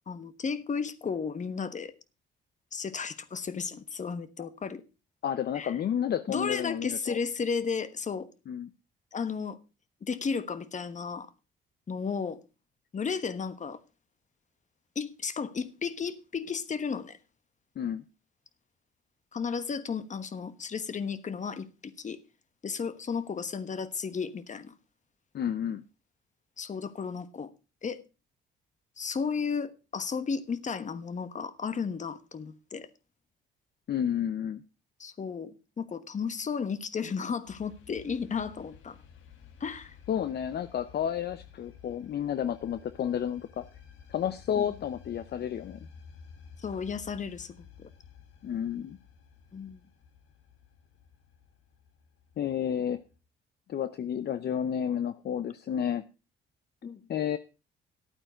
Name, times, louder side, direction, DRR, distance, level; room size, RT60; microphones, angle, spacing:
voice 1, 0.1-1.9 2.7-4.8 5.5-5.8 6.3-8.3 9.1-9.6 10.0-11.3 11.9-12.4 12.9-13.8 14.9-17.2 19.3-22.2 22.6-24.8 26.6-27.5 27.8-28.0 29.0-32.9 35.0-39.0 39.6-40.0 44.6-44.7 46.6-47.9 49.5-49.9 56.8-57.1, left 5 dB, 40° left, 1.2 m, -34 dB
voice 2, 5.2-7.2 8.5-8.7 17.8-18.0 25.3-25.8 33.9-34.6 40.1-43.7 44.1-45.9 48.4-49.0 52.4-53.0 53.7-56.0 57.1-57.4, left 9 dB, 55° left, 0.7 m, -31 dB
sound 1, 37.5-53.2, left 7 dB, 85° left, 1.7 m, -53 dB
12.0 x 8.8 x 5.0 m
cardioid pair, 90°, 20 cm